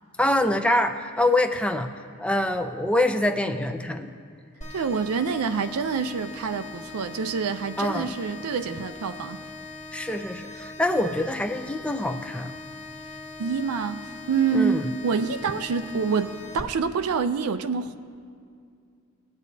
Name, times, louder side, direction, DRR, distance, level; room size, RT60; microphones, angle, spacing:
voice 1, 0.2-1.9 2.2-4.1 7.8-8.1 9.9-12.5 14.5-14.9, left 1 dB, 5° left, 6 dB, 0.4 m, -25 dB
sound 1, 4.6-16.6, left 2 dB, 35° left, 1.3 m, -41 dB
voice 2, 4.7-9.4 13.4-18.0, right 5 dB, 80° right, 9 dB, 0.4 m, -27 dB
21.0 x 8.3 x 2.7 m, 2.2 s
head